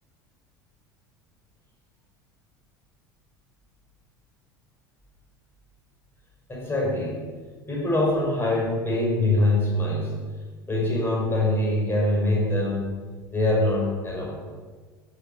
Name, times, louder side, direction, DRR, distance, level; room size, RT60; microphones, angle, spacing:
voice 1, 6.5-7.2 7.7-10.2 10.7-13.0 13.3-14.4, left 1 dB, 20° left, -3 dB, 5.3 m, -24 dB
11.5 x 11.0 x 6.9 m, 1.5 s
figure-of-eight pair, 70°, 11 cm